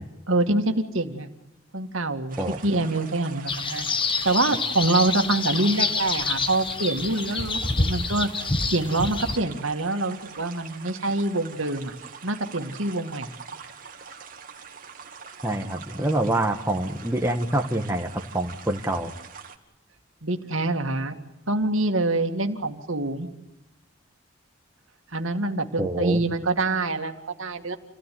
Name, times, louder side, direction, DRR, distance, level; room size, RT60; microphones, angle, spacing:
voice 1, 0.3-1.3 1.7-3.9 4.2-11.9 12.2-13.3 20.2-21.1 21.5-23.3 25.1-27.8, right 2 dB, 70° right, 6 dB, 2.1 m, -25 dB
sound 1, 2.3-19.6, right 6 dB, 40° right, 2.3 m, -44 dB
sound 2, 3.5-9.4, left 4 dB, 25° left, 1.2 m, -27 dB
voice 2, 15.4-19.1 25.8-26.2, right 1 dB, 10° right, 3 dB, 1.5 m, -26 dB
28.5 x 17.0 x 9.4 m, 0.93 s
head